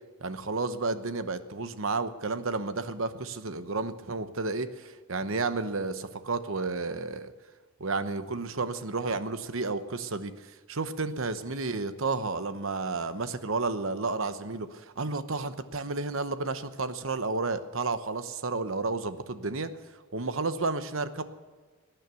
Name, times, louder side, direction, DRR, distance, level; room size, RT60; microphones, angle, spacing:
voice 1, 0.2-7.3 7.8-10.3 10.7-19.7 20.1-21.2, right 3 dB, 65° right, 11 dB, 0.9 m, -31 dB
18.5 x 10.0 x 6.9 m, 1.4 s
head